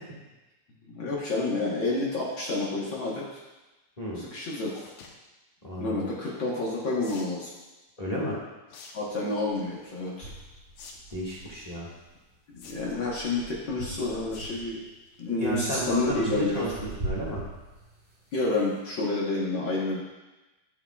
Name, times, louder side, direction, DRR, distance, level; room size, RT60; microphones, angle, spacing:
voice 1, 0.8-3.4 4.2-4.8 5.8-7.5 8.9-10.3 12.5-14.8 15.2-16.6 18.3-20.0, left 2 dB, 55° left, -5 dB, 1.4 m, -29 dB
sound 1, 4.7-5.1 7.0-7.4 8.7-8.9 9.3-9.6 10.8-10.9 11.2-11.3 12.6-13.1 14.3-14.6 15.0-15.2 15.6-15.7 15.9-16.0, left 5 dB, 85° left, 2.5 m, -47 dB
voice 2, 5.6-6.1 8.0-8.4 11.1-11.9 15.4-17.4, equal, 25° left, -6 dB, 0.8 m, -32 dB
sound 2, 9.4-9.5 10.2-12.1 12.5-14.9 15.4-18.2, right 2 dB, 60° right, 0.5 m, -40 dB
11.5 x 8.5 x 2.4 m, 1.1 s
omnidirectional pair, 3.7 m